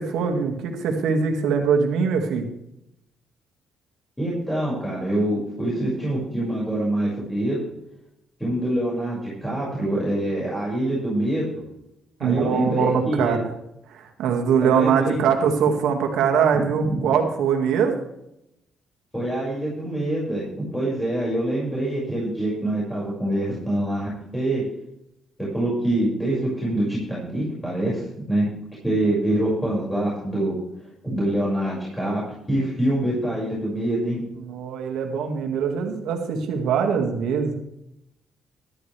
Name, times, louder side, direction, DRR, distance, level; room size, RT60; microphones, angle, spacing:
voice 1, 0.0-2.5 12.2-13.5 13.9-17.9 34.4-37.5, right 6 dB, 85° right, 3 dB, 2.1 m, -22 dB
voice 2, 4.2-7.6 8.4-11.6 12.2-13.4 14.6-15.2 16.5-17.1 19.1-20.5 20.7-24.6 25.4-28.5 28.8-30.5 31.0-32.2 32.5-34.3, right 1 dB, 10° left, -6 dB, 6.2 m, -25 dB
14.5 x 12.0 x 3.5 m, 0.81 s
cardioid pair, 90°, 0 cm